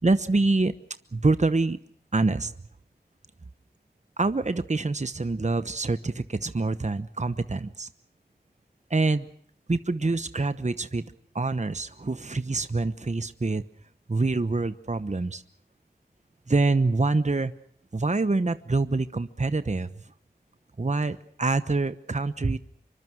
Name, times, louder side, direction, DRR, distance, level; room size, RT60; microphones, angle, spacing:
voice 1, 0.0-0.7 1.1-1.8 2.1-2.5 4.2-7.9 8.9-9.3 9.7-11.1 11.3-13.6 14.1-15.4 16.5-17.5 17.9-19.9 20.8-22.6, right 3 dB, 45° right, 12 dB, 1.0 m, -25 dB
26.0 x 24.0 x 6.3 m, 0.63 s
wide cardioid pair, 45°, 17 cm